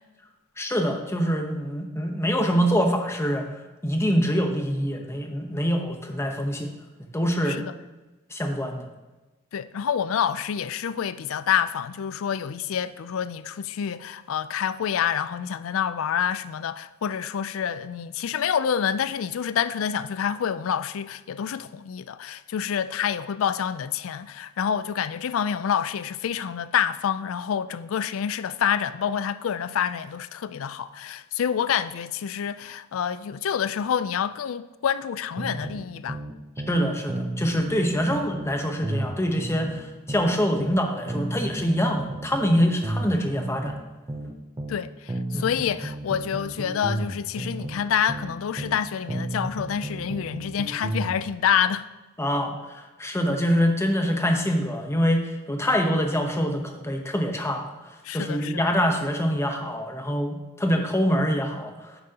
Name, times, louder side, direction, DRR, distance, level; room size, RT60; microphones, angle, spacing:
voice 1, 0.6-3.5 3.8-6.7 7.1-7.7 8.3-8.9 36.7-43.7 45.3-45.4 52.2-57.7 58.1-62.0, equal, 15° left, 0.9 m, -25 dB
voice 2, 9.5-36.2 44.7-44.9 45.3-51.9 58.0-58.6, left 8 dB, 70° left, 0.4 m, -27 dB
sound 1, 35.4-36.8 37.1-40.8 41.1-44.8 45.1-48.8 49.1-51.2, right 1 dB, 20° right, 0.5 m, -33 dB
10.5 x 7.6 x 2.8 m
head